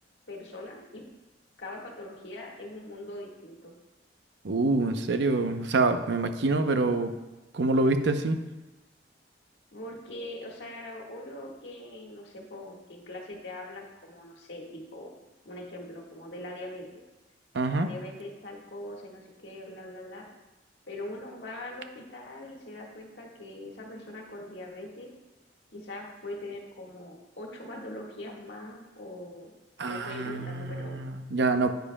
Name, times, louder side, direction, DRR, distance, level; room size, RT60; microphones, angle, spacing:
voice 1, 0.3-1.0 1.6-3.7 9.7-15.1 15.4-16.8 17.7-20.3 20.9-25.1 25.7-29.5 29.9-31.0, left 1 dB, 75° left, -1 dB, 1.6 m, -42 dB
voice 2, 4.4-7.1 7.5-8.4 17.5-17.9 29.8-31.7, right 2 dB, 70° right, 8 dB, 0.7 m, -26 dB
9.7 x 9.2 x 2.2 m, 1.1 s
head